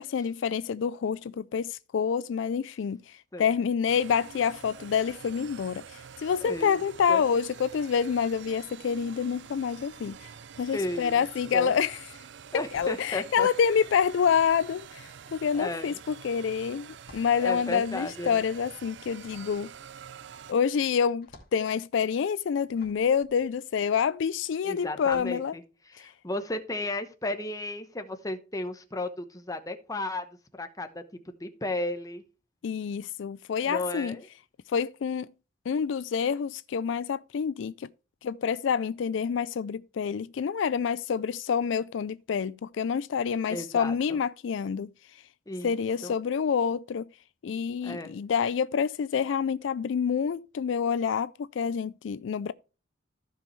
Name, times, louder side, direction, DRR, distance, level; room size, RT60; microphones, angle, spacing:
voice 1, 0.0-10.3 10.6-12.0 12.7-19.7 20.5-25.6 26.0-26.1 32.6-34.2 34.7-35.3 35.7-37.9 38.2-44.9 45.6-47.1 47.4-51.3 51.6-52.5, left 7 dB, 65° left, 0.3 m, -27 dB
sound 1, 3.9-20.5, right 7 dB, 60° right, 0.5 m, -47 dB
voice 2, 6.4-6.8 7.1-7.2 10.7-11.2 11.5-11.7 12.5-13.5 15.5-16.0 17.4-18.4 24.6-30.3 30.6-31.0 31.4-32.2 33.6-34.2 43.5-44.2 45.5-45.7 46.0-46.1 47.8-48.2, left 2 dB, 20° left, 1.0 m, -34 dB
sound 2, 9.7-10.9 11.2-24.4 24.9-25.4, left 2 dB, 50° left, 2.1 m, -57 dB
14.5 x 5.3 x 3.1 m
head